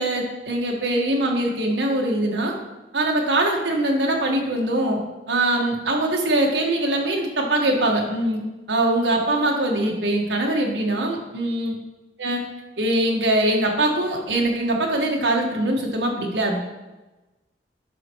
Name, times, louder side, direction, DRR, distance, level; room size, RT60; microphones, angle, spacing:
voice 1, 0.0-2.5 2.9-5.0 5.3-8.4 8.7-11.7 12.2-12.4 12.8-16.6, right 1 dB, 85° right, 0 dB, 1.4 m, -22 dB
9.8 x 5.8 x 3.0 m, 1.1 s
head